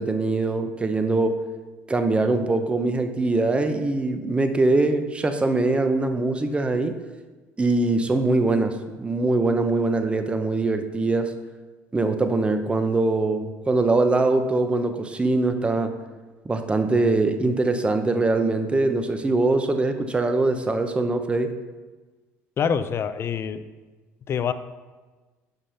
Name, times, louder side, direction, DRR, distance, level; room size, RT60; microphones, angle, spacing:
voice 1, 0.0-1.3 1.9-6.9 7.6-11.3 11.9-15.9 16.4-21.5, right 2 dB, 15° right, 8 dB, 0.7 m, -22 dB
voice 2, 22.6-23.6 24.3-24.5, left 7 dB, 40° left, 12 dB, 0.5 m, -25 dB
5.6 x 5.3 x 5.6 m, 1.3 s
supercardioid pair, 95°, 6 cm